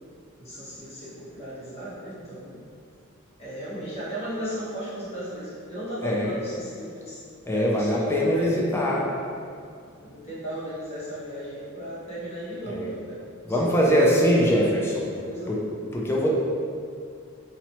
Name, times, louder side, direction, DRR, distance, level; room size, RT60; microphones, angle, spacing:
voice 1, 0.4-2.6 3.4-7.2 7.5-9.0 10.0-13.2 13.5-14.7 15.0-15.7, right 1 dB, 30° left, -11 dB, 1.0 m, -35 dB
voice 2, 6.0-6.3 7.5-9.1 12.6-12.9 13.4-15.1 15.5-15.6 15.9-16.3, equal, 10° left, -3 dB, 0.3 m, -22 dB
2.8 x 2.0 x 2.9 m, 2.4 s
head